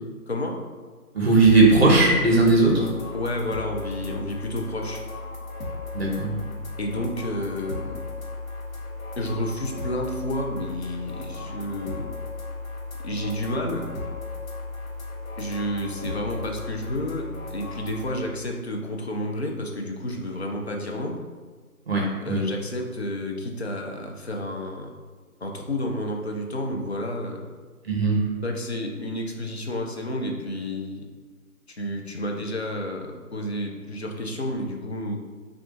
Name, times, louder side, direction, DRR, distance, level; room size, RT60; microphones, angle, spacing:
voice 1, 0.3-0.6 3.1-5.0 6.8-8.0 9.2-12.1 13.0-13.9 15.4-21.2 22.2-24.9 25.4-27.5 28.4-31.1 31.7-35.2, left 1 dB, 45° left, 1 dB, 0.5 m, -30 dB
voice 2, 1.1-2.9 5.9-6.4 21.9-22.4 27.8-28.3, right 2 dB, 45° right, -1 dB, 1.0 m, -18 dB
sound 1, 1.4-18.1, left 3 dB, 65° left, 0.9 m, -35 dB
6.1 x 2.4 x 2.5 m, 1.5 s
figure-of-eight pair, 155°, 45 cm